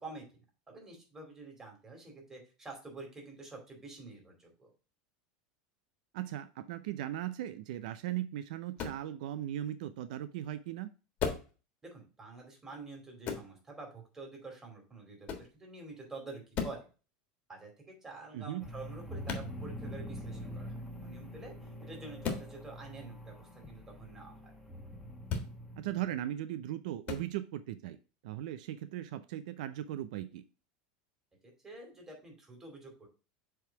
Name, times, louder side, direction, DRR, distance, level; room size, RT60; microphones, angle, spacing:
voice 1, 0.0-4.7 11.8-16.9 17.5-24.5 31.6-33.1, right 3 dB, 15° right, 0 dB, 2.5 m, -48 dB
voice 2, 6.1-10.9 18.3-18.6 25.8-28.0 28.2-30.4, right 12 dB, 75° right, 12 dB, 0.5 m, -38 dB
sound 1, 8.8-9.0 11.2-11.5 13.2-13.5 15.2-15.5 16.5-16.8 19.2-19.5 22.2-22.5 25.2-25.5 27.0-27.2, left 6 dB, 40° left, 1.5 m, -35 dB
sound 2, 18.6-26.3, equal, ahead, 1.2 m, -45 dB
7.7 x 3.5 x 4.6 m, 0.34 s
supercardioid pair, 150°, 4 cm